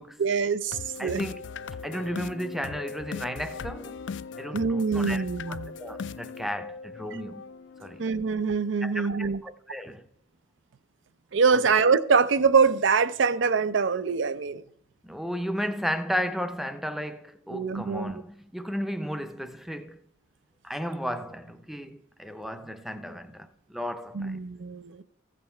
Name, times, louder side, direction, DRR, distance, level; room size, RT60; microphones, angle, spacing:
voice 1, 0.2-1.2 4.5-5.7 8.0-9.4 11.3-14.6 17.5-18.1 24.1-25.0, right 5 dB, 75° right, 0.5 m, -24 dB
sound 1, 0.7-8.7, left 5 dB, 70° left, 0.4 m, -39 dB
voice 2, 1.0-1.4 1.8-4.0 4.4-7.4 7.8-8.0 8.8-10.1 11.5-11.7 15.0-20.0 20.6-24.4, equal, ahead, 0.5 m, -34 dB
14.5 x 7.6 x 4.3 m
head